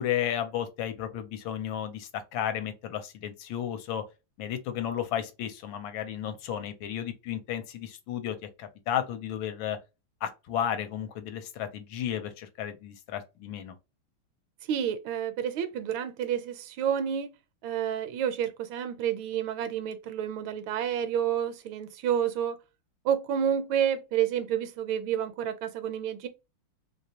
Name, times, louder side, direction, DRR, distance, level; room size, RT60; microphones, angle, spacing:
voice 1, 0.0-4.0 4.4-9.8 10.2-13.7, left 10 dB, 75° left, 1.3 m, -33 dB
voice 2, 14.7-17.3 17.6-22.6 23.0-26.3, right 9 dB, 75° right, 1.3 m, -29 dB
3.3 x 2.8 x 2.7 m
omnidirectional pair, 2.3 m